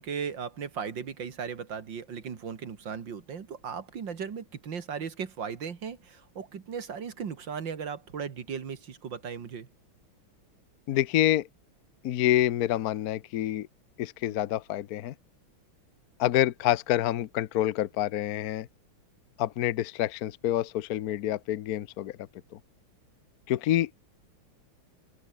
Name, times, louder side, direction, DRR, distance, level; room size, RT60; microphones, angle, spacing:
voice 1, 0.0-9.7, right 6 dB, 60° right, 2.6 m, -37 dB
voice 2, 10.9-11.5 12.0-13.7 14.0-15.1 16.2-18.7 19.4-22.2 23.5-23.9, left 13 dB, 65° left, 0.9 m, -27 dB
open air
omnidirectional pair, 2.3 m